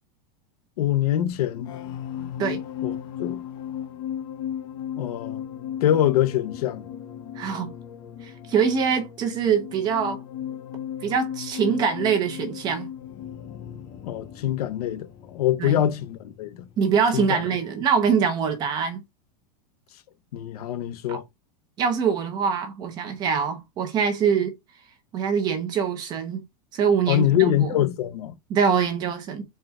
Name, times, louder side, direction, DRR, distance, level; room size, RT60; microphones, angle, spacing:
voice 1, 0.8-1.8 2.8-3.4 5.0-5.4 5.8-6.8 14.0-16.7 17.1-17.4 20.3-21.2 27.1-28.3, left 12 dB, 80° left, 0.6 m, -24 dB
sound 1, 1.3-18.0 18.2-18.5, left 9 dB, 25° left, 0.4 m, -36 dB
voice 2, 7.4-7.7 8.5-10.2 11.0-12.9 15.6-15.8 16.8-19.0 21.1-21.2 21.8-24.5 25.1-26.4 26.7-27.5 28.5-29.4, right 6 dB, 20° right, 0.6 m, -23 dB
4.2 x 2.2 x 3.5 m
supercardioid pair, 175°, 19 cm